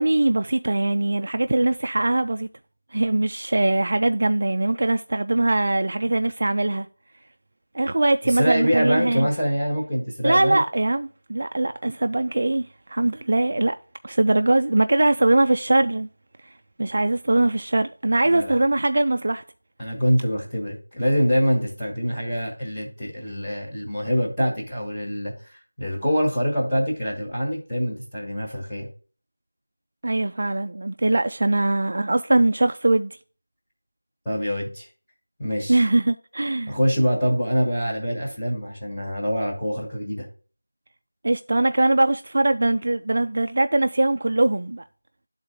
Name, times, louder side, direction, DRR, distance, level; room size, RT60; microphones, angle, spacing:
voice 1, 0.0-2.5 2.9-6.9 7.7-9.3 10.2-13.8 14.0-16.1 16.8-19.4 30.0-33.2 35.7-36.8 41.2-44.8, right 2 dB, 40° right, 0.3 m, -21 dB
voice 2, 8.2-10.6 18.3-18.6 19.8-28.9 34.2-34.9 35.4-35.8 36.7-40.3, equal, 5° left, 1.4 m, -25 dB
10.0 x 4.0 x 3.5 m
figure-of-eight pair, 175°, 0 cm